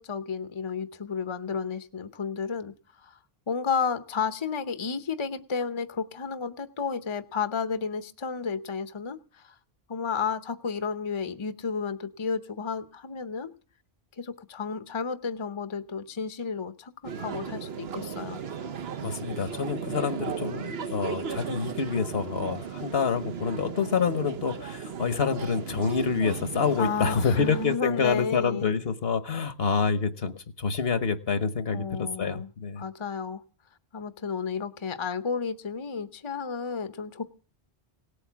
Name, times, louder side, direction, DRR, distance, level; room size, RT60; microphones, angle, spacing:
voice 1, 0.0-2.7 3.0-3.2 3.5-9.6 9.9-13.5 14.2-18.4 26.8-28.7 31.7-32.5 32.8-33.4 33.9-37.2, left 5 dB, 30° left, 10 dB, 0.8 m, -32 dB
sound 1, 17.0-27.8, right 6 dB, 70° right, 1.1 m, -36 dB
voice 2, 19.0-32.8, left 5 dB, 65° left, 11 dB, 1.3 m, -27 dB
18.0 x 8.5 x 7.3 m, 0.39 s
omnidirectional pair, 1.1 m